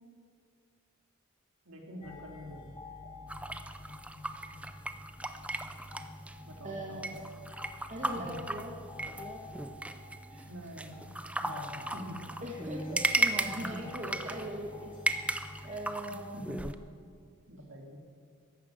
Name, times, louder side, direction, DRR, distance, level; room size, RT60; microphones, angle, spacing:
voice 1, 1.7-2.8 6.4-7.1 8.1-8.4 10.5-11.1 11.4-12.2 13.4-13.8 16.1-16.7 17.5-18.0, equal, 70° right, 0 dB, 2.6 m, -45 dB
sound 1, 2.0-15.9, left 3 dB, 25° left, 1.8 m, -49 dB
sound 2, 3.3-16.7, right 2 dB, 5° right, 0.5 m, -36 dB
voice 2, 6.6-7.2 7.9-8.7 9.2-9.5 10.3-10.5 12.4-14.9 15.6-16.4, right 1 dB, 35° right, -1 dB, 1.6 m, -40 dB
14.0 x 11.5 x 7.4 m, 2.2 s
head